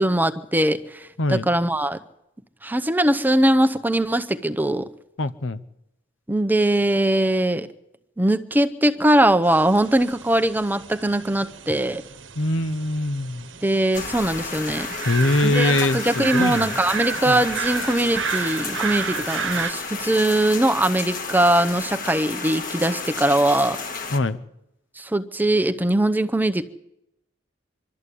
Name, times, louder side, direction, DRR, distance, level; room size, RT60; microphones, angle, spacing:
voice 1, 0.0-2.0 2.6-4.9 6.3-7.7 8.2-12.0 13.6-14.9 15.4-23.8 25.0-26.6, right 1 dB, 10° right, 10 dB, 0.7 m, -21 dB
voice 2, 1.2-1.5 5.2-5.6 12.4-13.5 15.0-16.8 17.2-17.4 24.1-24.4, left 2 dB, 85° left, 13 dB, 0.9 m, -23 dB
sound 1, 9.4-19.7, right 6 dB, 75° right, 1.0 m, -32 dB
sound 2, 13.9-24.2, left 4 dB, 45° left, 1.7 m, -32 dB
24.0 x 12.5 x 8.5 m, 0.85 s
head